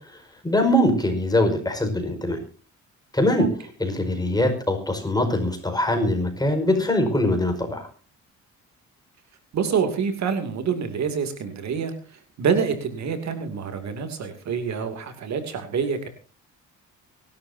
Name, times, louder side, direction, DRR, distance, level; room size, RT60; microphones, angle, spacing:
voice 1, 0.4-2.4 3.1-3.5 3.8-7.9, left 1 dB, 15° left, 5 dB, 5.1 m, -22 dB
voice 2, 9.5-16.1, right 6 dB, 65° right, 8 dB, 2.7 m, -27 dB
23.5 x 12.5 x 2.8 m, 0.36 s
cardioid pair, 90°, 30 cm